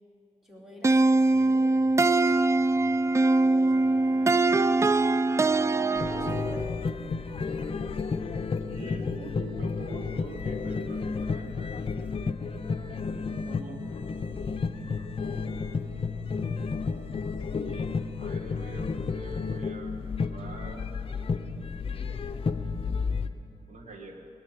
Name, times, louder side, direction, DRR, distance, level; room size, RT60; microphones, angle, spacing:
voice 1, 0.4-1.8 3.3-4.4 5.5-6.8, equal, ahead, -3 dB, 3.6 m, -47 dB
sound 1, 0.8-6.6, right 2 dB, 20° right, 0.3 m, -22 dB
sound 2, 6.0-23.3, left 4 dB, 40° left, 0.7 m, -32 dB
voice 2, 8.6-11.8 13.0-13.9 14.7-15.7 16.6-21.0 21.9-22.6 23.7-24.3, right 2 dB, 65° right, 3 dB, 2.0 m, -46 dB
17.5 x 10.5 x 7.6 m, 2.6 s
cardioid pair, 90°, 14 cm